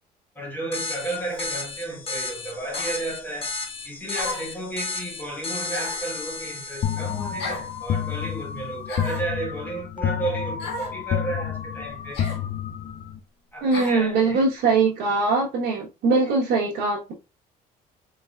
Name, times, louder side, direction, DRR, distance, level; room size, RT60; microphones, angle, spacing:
voice 1, 0.3-3.5 3.8-12.3 13.5-14.4 16.2-16.3, right 2 dB, 10° left, 1.4 m, -33 dB
sound 1, 0.7-7.9, left 3 dB, 35° left, 1.2 m, -34 dB
sound 2, 1.3-1.5 2.7-3.0 4.1-4.6 5.7-6.1 7.4-7.7 8.9-9.3 10.6-11.0 12.1-12.4 13.7-14.0, left 2 dB, 85° left, 1.6 m, -34 dB
sound 3, 6.8-13.2, left 9 dB, 50° left, 0.5 m, -29 dB
voice 2, 13.6-17.1, right 4 dB, 85° right, 1.2 m, -22 dB
4.1 x 3.8 x 2.4 m
cardioid pair, 110°, 17 cm